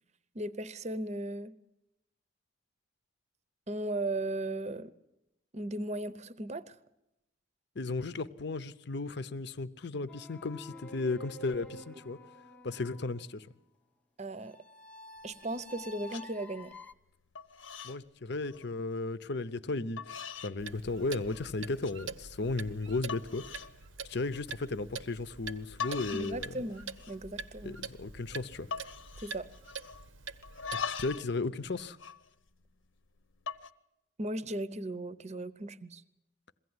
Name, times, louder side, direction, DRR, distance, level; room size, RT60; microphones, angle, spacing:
voice 1, 0.3-1.6 3.7-4.9 5.5-6.7 14.2-14.6 15.2-16.7 26.1-27.8 29.2-29.5 34.2-36.0, right 1 dB, 35° right, 0.7 m, -36 dB
voice 2, 7.8-12.2 12.6-13.5 17.8-20.0 20.4-23.4 24.0-26.6 27.6-28.7 30.7-32.0, left 3 dB, 60° left, 0.8 m, -35 dB
sound 1, 10.1-13.4 14.5-16.9, left 1 dB, 5° left, 0.8 m, -49 dB
sound 2, 15.2-15.8 16.1-16.3 16.7-17.1 17.3-18.0 18.3-18.7 19.4-19.5 20.0-20.6 21.0-21.5 21.8-22.0 22.5-22.6 23.1-23.7 24.1-24.4 25.5-25.6 25.8-26.4 26.7-27.3 27.6-27.7 27.9-28.3 28.7-30.1 30.4-31.3 31.6-32.9 33.3-33.7, left 6 dB, 80° left, 1.0 m, -41 dB
Clock, 20.6-31.2, right 5 dB, 85° right, 0.9 m, -45 dB
22.5 x 16.0 x 9.6 m
head